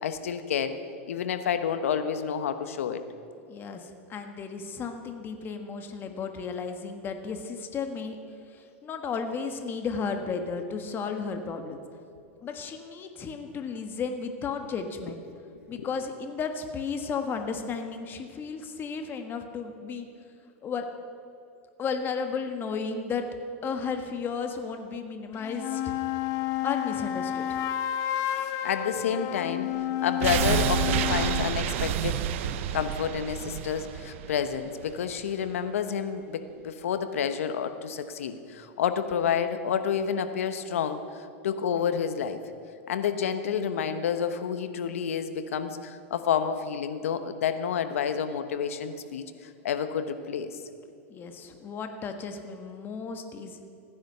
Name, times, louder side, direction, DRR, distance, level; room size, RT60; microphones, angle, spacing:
voice 1, 0.0-0.7 1.1-3.0 15.8-15.9 28.6-29.7 30.0-32.2 32.7-41.0 41.4-42.4 42.9-49.2 49.6-50.6, left 7 dB, 85° left, 10 dB, 1.1 m, -29 dB
voice 2, 3.5-8.2 8.5-11.8 12.4-15.2 15.7-20.1 20.6-20.8 21.8-23.2 23.6-25.8 26.6-27.6 28.1-28.2 51.1-53.6, left 5 dB, 30° left, 6 dB, 1.5 m, -34 dB
sound 1, 25.3-31.5, left 11 dB, 45° left, 0.8 m, -30 dB
sound 2, 30.2-35.2 35.5-35.6, right 10 dB, 65° right, 0.8 m, -29 dB
16.0 x 10.0 x 6.8 m, 2.6 s
hypercardioid pair, 120°, 7 cm